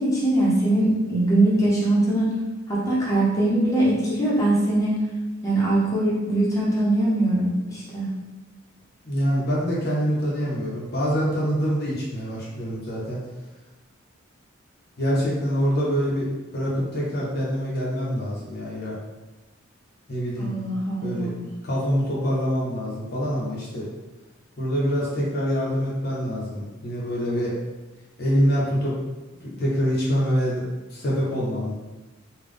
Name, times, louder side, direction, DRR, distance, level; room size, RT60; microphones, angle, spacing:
voice 1, 0.0-2.4 2.7-5.0 5.4-8.1 20.4-21.4, right 1 dB, 15° left, -7 dB, 0.9 m, -22 dB
voice 2, 9.0-13.2 15.0-16.3 16.5-19.0 20.1-20.5 21.0-21.3 21.6-23.9 24.6-27.5 28.2-29.0 29.4-31.7, equal, 50° left, -5 dB, 0.8 m, -25 dB
3.7 x 2.3 x 3.4 m, 1.1 s
head